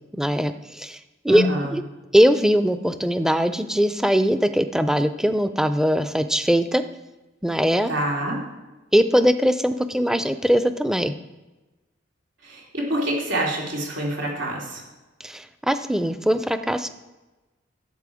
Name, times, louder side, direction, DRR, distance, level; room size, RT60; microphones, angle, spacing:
voice 1, 0.1-1.0 1.2-1.5 1.7-1.8 2.1-6.8 7.4-7.9 8.9-11.1 15.2-16.9, equal, 5° right, 10 dB, 0.4 m, -21 dB
voice 2, 1.3-1.7 7.9-8.4 12.4-14.8, right 1 dB, 90° right, -2 dB, 3.4 m, -26 dB
12.0 x 7.5 x 4.9 m, 1.1 s
head